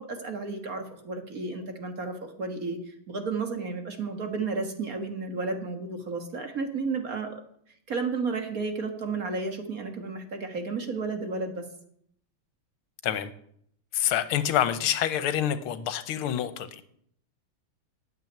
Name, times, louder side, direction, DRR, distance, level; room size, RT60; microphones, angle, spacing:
voice 1, 0.0-7.4 7.9-11.6, right 4 dB, 45° right, 5 dB, 1.8 m, -32 dB
voice 2, 13.9-16.8, left 10 dB, 80° left, 12 dB, 1.7 m, -27 dB
9.6 x 7.5 x 9.3 m, 0.68 s
omnidirectional pair, 2.3 m